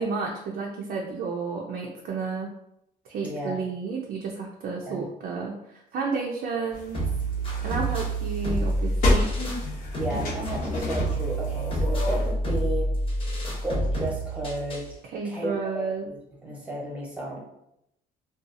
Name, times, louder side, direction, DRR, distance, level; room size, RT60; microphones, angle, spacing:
voice 1, 0.0-2.5 3.1-7.0 7.6-9.6 15.1-16.1, right 4 dB, 60° right, -1 dB, 0.5 m, -31 dB
voice 2, 3.2-3.6 4.9-5.1 9.9-12.9 13.6-14.9 15.2-17.4, right 1 dB, 10° right, -4 dB, 0.9 m, -33 dB
sound 1, 6.7-12.3, left 2 dB, 55° left, 0.9 m, -31 dB
sound 2, 6.9-14.9, right 1 dB, 30° left, 0.9 m, -28 dB
2.6 x 2.3 x 2.5 m, 0.80 s
cardioid pair, 110°, 17 cm